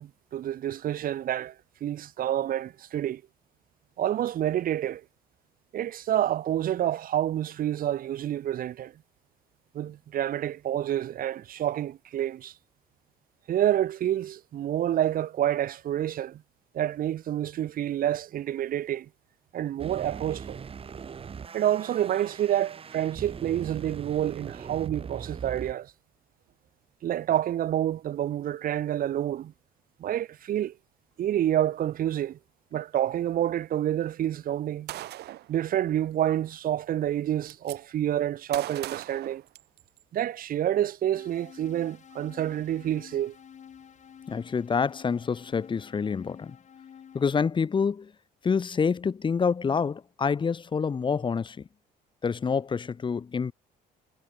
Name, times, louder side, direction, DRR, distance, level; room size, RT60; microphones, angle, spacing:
voice 1, 0.0-1.5 1.8-3.2 4.0-5.0 5.7-8.9 9.7-12.5 13.5-16.4 16.7-19.1 19.5-20.6 21.5-25.9 27.0-29.5 30.0-30.7 31.2-32.4 32.7-34.9 35.5-39.4 40.1-43.3, right 11 dB, 55° right, 1.6 m, -28 dB
sound 1, 19.8-25.7, right 6 dB, 35° right, 1.7 m, -40 dB
Gunshot gunfire, 34.9-35.5 36.7-36.8 37.1-37.8 38.5-40.0, right 15 dB, 75° right, 4.1 m, -39 dB
sound 2, 41.1-47.3, left 8 dB, 45° left, 4.3 m, -50 dB
voice 2, 44.3-46.6 47.1-48.1 48.4-51.7 52.2-53.5, left 5 dB, 30° left, 1.2 m, -27 dB
cardioid pair, 110°, 17 cm